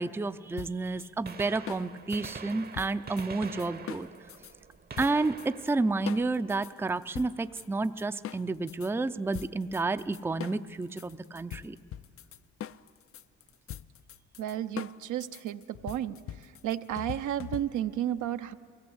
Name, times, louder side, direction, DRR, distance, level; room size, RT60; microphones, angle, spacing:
voice 1, 0.0-4.1 5.0-11.8, right 3 dB, 10° right, 11 dB, 0.5 m, -30 dB
sound 1, 0.6-4.5 5.0-5.7 6.1-8.9 9.3-18.0, left 10 dB, 50° left, 0.5 m, -43 dB
Gunshot gunfire, 1.1-7.0 8.9-9.0 10.1-10.2 11.7-11.8 13.2-13.3 13.5-13.6, right 5 dB, 30° right, 0.8 m, -45 dB
voice 2, 14.4-16.2 16.6-18.5, right 11 dB, 75° right, 9 dB, 0.8 m, -32 dB
23.5 x 17.0 x 8.0 m, 2.3 s
cardioid pair, 90°, 30 cm